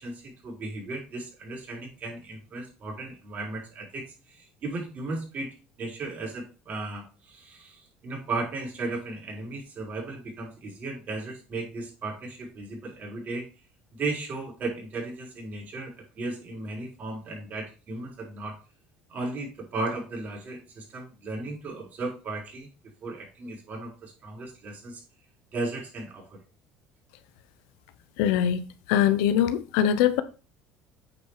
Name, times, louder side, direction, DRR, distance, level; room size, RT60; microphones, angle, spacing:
voice 1, 0.0-13.4 13.9-18.6 19.1-22.7 23.0-25.0 25.5-26.4, right 2 dB, 45° right, 4.4 m, -35 dB
voice 2, 28.2-30.2, left 10 dB, 85° left, 0.8 m, -23 dB
8.7 x 4.8 x 4.7 m
supercardioid pair, 110°, 4 cm